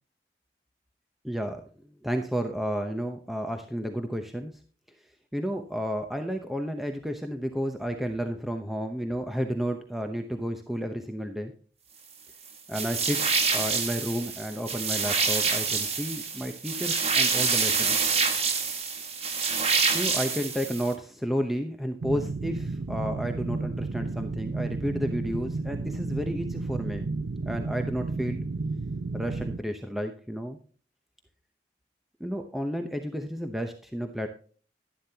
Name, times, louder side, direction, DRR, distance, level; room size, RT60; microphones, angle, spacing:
voice 1, 1.2-4.5 5.3-11.5 12.7-18.1 19.9-27.1 27.4-28.5 29.1-30.6 32.2-34.3, equal, ahead, 4 dB, 0.8 m, -32 dB
sound 1, 12.7-20.9, right 5 dB, 35° right, 1.5 m, -26 dB
sound 2, 22.0-29.6, right 3 dB, 80° right, 0.6 m, -32 dB
11.5 x 11.0 x 2.8 m, 0.42 s
head